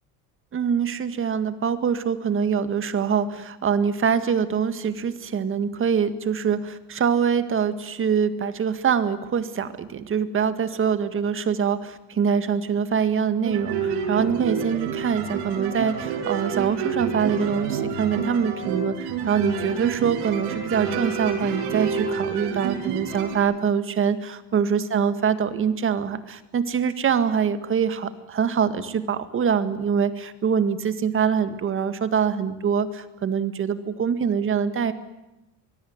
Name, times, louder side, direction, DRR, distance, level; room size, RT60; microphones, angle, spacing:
voice 1, 0.5-34.9, right 7 dB, 30° right, 11 dB, 1.9 m, -24 dB
sound 1, 13.4-23.4, right 6 dB, 80° right, 7.2 m, -28 dB
25.0 x 22.0 x 9.5 m, 0.95 s
cardioid pair, 145°, 40 cm